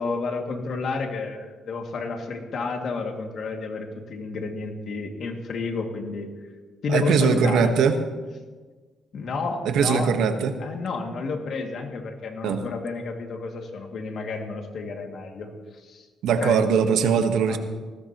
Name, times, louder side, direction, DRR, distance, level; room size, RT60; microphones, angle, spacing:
voice 1, 0.0-6.3 6.8-7.7 9.1-10.2 10.6-16.6 17.5-17.6, left 4 dB, 60° left, 2 dB, 2.4 m, -30 dB
voice 2, 6.9-8.0 9.6-10.5 12.4-12.6 16.2-17.6, right 6 dB, 80° right, 7 dB, 1.4 m, -21 dB
19.5 x 16.5 x 3.1 m, 1.4 s
cardioid pair, 90°, 0 cm